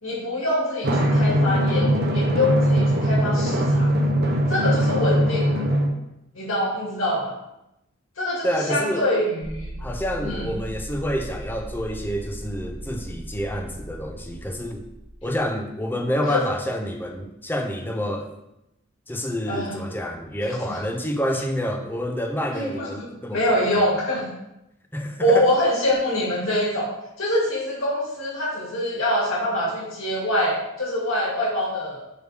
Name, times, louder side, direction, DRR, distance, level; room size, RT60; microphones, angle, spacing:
voice 1, 0.0-3.9 4.5-5.8 6.3-7.3 8.2-9.8 10.2-10.5 16.3-16.4 19.5-19.7 20.5-20.8 22.5-24.2 25.2-26.9 27.2-32.0, left 1 dB, 70° left, -5 dB, 2.3 m, -24 dB
Drum, 0.8-5.9, equal, 50° right, 0.8 m, -21 dB
voice 2, 1.4-2.0 8.4-9.1 9.8-14.8 15.2-18.3 19.1-23.9 24.9-25.5, equal, 10° left, 4 dB, 0.5 m, -28 dB
sound 1, 9.4-15.6, right 1 dB, 30° left, 0.9 m, -38 dB
6.5 x 4.8 x 3.5 m, 0.87 s
head